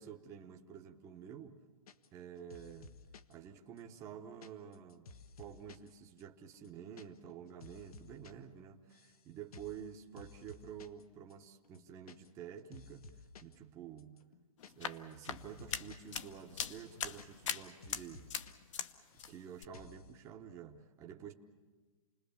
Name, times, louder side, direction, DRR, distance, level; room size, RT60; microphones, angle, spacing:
voice 1, 0.0-1.6 2.1-2.9 3.3-5.1 5.4-14.3 14.7-18.3 19.3-21.3, right 8 dB, 15° right, 3 dB, 0.9 m, -50 dB
sound 1, 1.9-2.2 2.5-3.3 3.8-5.9 6.2-6.3 6.5-7.0 7.3-8.3 8.6-9.2 9.5-9.8 10.2-11.0 11.3-11.4 11.6-12.5 12.7-13.5 14.0-16.1 16.4-16.5 16.7-17.6 17.8-18.5 18.8-19.4 19.7-20.1, left 3 dB, 80° left, 1.3 m, -55 dB
sound 2, 14.6-18.9 19.2-19.7, left 8 dB, 55° left, 1.1 m, -41 dB
29.0 x 20.5 x 7.1 m, 1.4 s
hypercardioid pair, 160°, 19 cm